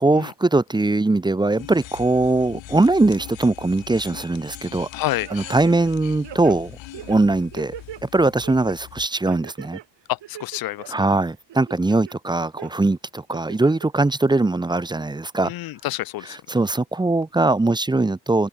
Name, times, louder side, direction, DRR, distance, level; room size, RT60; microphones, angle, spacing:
voice 1, 0.0-4.9 5.3-6.8 7.1-7.7 8.0-9.8 10.9-15.5 16.3-18.5, right 2 dB, 10° right, 0.8 m, -21 dB
sound 1, 1.6-9.1, left 15 dB, 80° left, 1.4 m, -41 dB
voice 2, 4.9-5.3 10.1-10.9 15.4-16.4, left 16 dB, 55° left, 0.5 m, -28 dB
sound 2, 5.2-5.9 6.2-8.0 8.4-8.8 9.3-9.8 10.2-11.1 11.5-12.1 12.6-12.7 13.3-13.9 14.3-14.4, right 12 dB, 70° right, 4.0 m, -39 dB
open air
cardioid pair, 160°, 45 cm